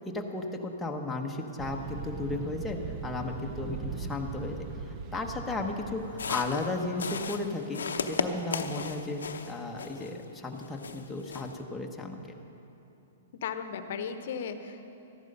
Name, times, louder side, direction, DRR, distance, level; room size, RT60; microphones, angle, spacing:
voice 1, 0.1-4.5 5.1-9.2 9.5-12.2, left 2 dB, 5° left, 0 dB, 1.1 m, -34 dB
sound 1, 1.6-6.9, right 6 dB, 35° right, 0.7 m, -40 dB
sound 2, 6.1-10.2 10.6-11.6, left 5 dB, 90° left, 0.7 m, -35 dB
voice 2, 13.3-14.8, left 7 dB, 60° left, 9 dB, 0.9 m, -36 dB
14.0 x 10.5 x 5.4 m, 2.9 s
hypercardioid pair, 135°, 0 cm